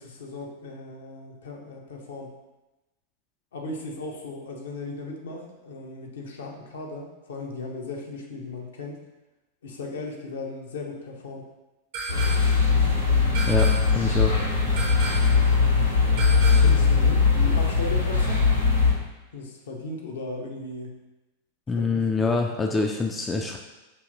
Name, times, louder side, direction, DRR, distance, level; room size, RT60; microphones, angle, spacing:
voice 1, 0.0-2.4 3.5-9.0 9.6-11.5 12.9-13.5 16.5-18.4 19.3-21.0 21.8-22.2, left 2 dB, 65° left, 0 dB, 0.7 m, -37 dB
sound 1, 11.9-12.7 13.3-14.1 14.8-15.5 16.2-16.9, right 3 dB, 45° right, 0.6 m, -34 dB
sound 2, 12.1-18.9, left 5 dB, 90° left, 1.4 m, -20 dB
voice 2, 13.5-14.4 21.7-23.6, left 3 dB, 15° left, 2 dB, 0.3 m, -25 dB
4.9 x 2.8 x 2.6 m, 1.0 s
figure-of-eight pair, 90°, 0 cm